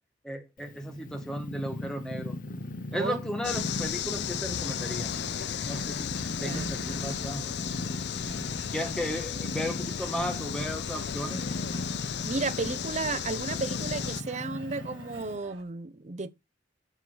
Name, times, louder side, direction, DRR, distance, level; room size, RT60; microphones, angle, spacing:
voice 1, 0.2-2.3 2.9-5.1 5.6-6.1 6.4-7.4 8.7-11.4, equal, 5° left, 1.7 m, -35 dB
Purr, 0.6-15.4, left 1 dB, 45° left, 0.8 m, -38 dB
sound 1, 3.4-14.2, left 9 dB, 60° left, 0.4 m, -35 dB
sound 2, 4.5-15.6, right 2 dB, 90° right, 3.1 m, -49 dB
voice 2, 12.2-16.3, right 3 dB, 40° right, 0.7 m, -33 dB
9.1 x 6.2 x 4.0 m
head